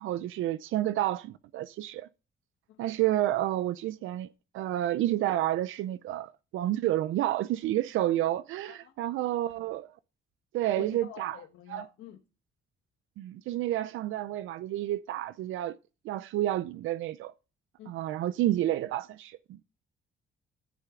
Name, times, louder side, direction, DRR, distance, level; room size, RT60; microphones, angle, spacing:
voice 1, 0.0-2.1 2.8-4.3 4.5-9.9 10.5-11.4 11.7-11.9 13.2-15.8 16.0-17.3 17.9-19.6, right 13 dB, 80° right, 0.5 m, -30 dB
voice 2, 10.8-12.2 17.8-18.1, left 11 dB, 90° left, 1.3 m, -47 dB
14.0 x 6.6 x 3.7 m
cardioid pair, 90°, 20 cm